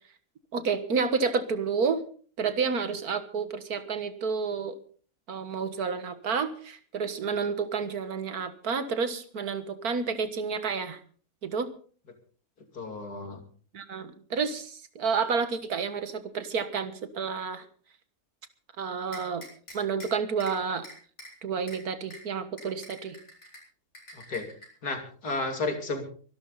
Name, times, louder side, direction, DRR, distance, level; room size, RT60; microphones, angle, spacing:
voice 1, 0.5-2.0 2.4-4.8 5.3-11.0 11.4-11.7 13.7-17.7 18.8-19.5 19.7-20.9 21.4-23.2, right 5 dB, 75° right, 11 dB, 2.0 m, -30 dB
voice 2, 12.7-13.4 24.1-24.5 24.8-26.0, left 3 dB, 85° left, 4 dB, 3.4 m, -32 dB
sound 1, 19.1-20.1 20.4-20.5 20.8-21.3 21.7-21.8 22.1-22.2 22.6-23.6 23.9-24.7, equal, 45° left, 6.7 m, -45 dB
24.0 x 12.0 x 4.0 m, 0.42 s
omnidirectional pair, 1.6 m